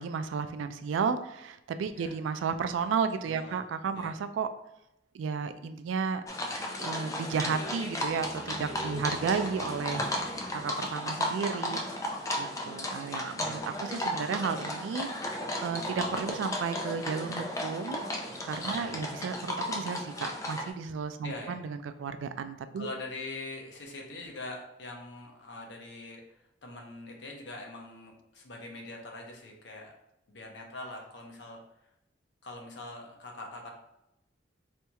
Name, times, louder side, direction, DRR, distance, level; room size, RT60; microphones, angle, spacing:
voice 1, 0.0-4.5 5.1-6.2 6.8-10.1 10.5-11.8 12.4-15.1 15.6-18.1 18.4-22.9, right 6 dB, 80° right, 10 dB, 0.3 m, -33 dB
voice 2, 3.2-3.6 3.9-4.1 8.9-9.2 13.4-13.7 18.7-19.1 21.2-21.6 22.8-29.9 30.3-31.6 32.4-33.7, left 2 dB, 65° left, 1 dB, 0.7 m, -43 dB
sound 1, 6.3-20.7, left 1 dB, 15° left, 0.3 m, -34 dB
sound 2, 7.2-11.2 13.6-13.7, equal, 55° right, 0.8 m, -52 dB
4.3 x 2.3 x 2.8 m, 0.84 s
head